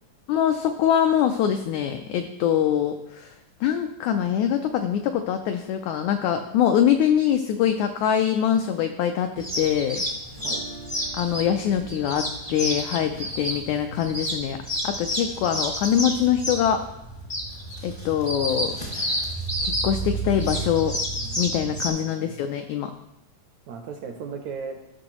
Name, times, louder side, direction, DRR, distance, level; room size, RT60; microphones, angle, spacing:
voice 1, 0.3-3.3 3.6-10.0 11.1-14.6 14.8-16.8 17.8-18.8 19.6-21.0 21.4-22.9, left 9 dB, 90° left, 7 dB, 1.6 m, -23 dB
sound 1, 9.4-21.9, equal, 40° left, 0.4 m, -30 dB
Guitar, 10.3-16.3, right 2 dB, 70° left, 1.0 m, -47 dB
voice 2, 21.9-22.5 23.7-24.8, right 5 dB, 80° right, 4 dB, 1.6 m, -36 dB
15.0 x 6.2 x 3.0 m, 0.88 s
omnidirectional pair, 3.9 m